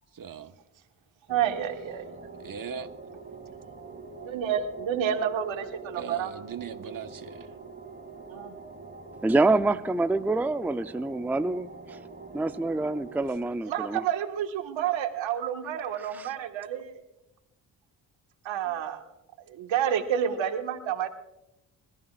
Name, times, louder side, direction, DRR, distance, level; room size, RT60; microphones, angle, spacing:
voice 1, 0.1-0.5 2.4-2.9 5.9-7.6 18.6-18.8, right 6 dB, 45° right, 1.4 m, -40 dB
sound 1, 1.3-13.4, right 3 dB, 20° right, 2.7 m, -45 dB
voice 2, 1.3-2.1 4.2-6.3 8.3-8.6 13.7-17.0 18.5-19.0 19.5-21.1, right 9 dB, 75° right, 1.7 m, -29 dB
voice 3, 9.2-12.0 12.3-14.0 16.0-16.3, right 2 dB, 5° right, 0.6 m, -26 dB
26.0 x 14.0 x 2.5 m
supercardioid pair, 55°, 46 cm